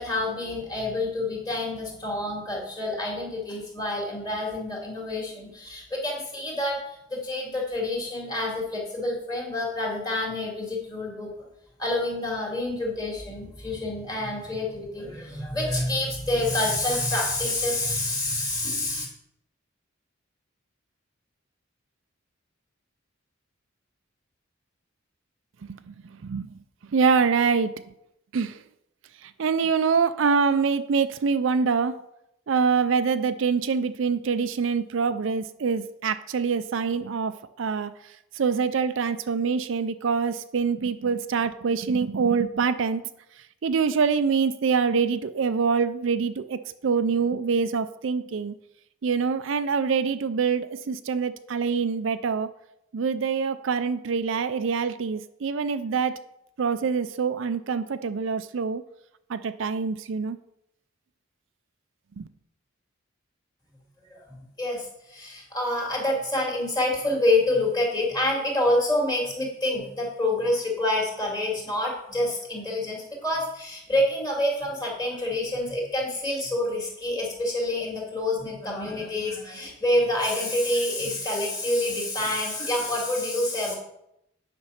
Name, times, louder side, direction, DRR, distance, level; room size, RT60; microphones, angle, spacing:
voice 1, 0.0-11.3 11.8-19.1 64.1-83.7, left 1 dB, 20° left, -2 dB, 2.5 m, -27 dB
voice 2, 25.6-26.0 26.2-26.5 26.9-27.8 28.3-28.6 29.2-32.0 32.5-37.9 38.3-43.0 43.6-48.5 49.0-52.5 52.9-56.2 56.6-58.8 59.3-60.4 62.2-62.3, right 5 dB, 70° right, 11 dB, 0.4 m, -25 dB
8.8 x 5.3 x 5.7 m, 0.80 s
head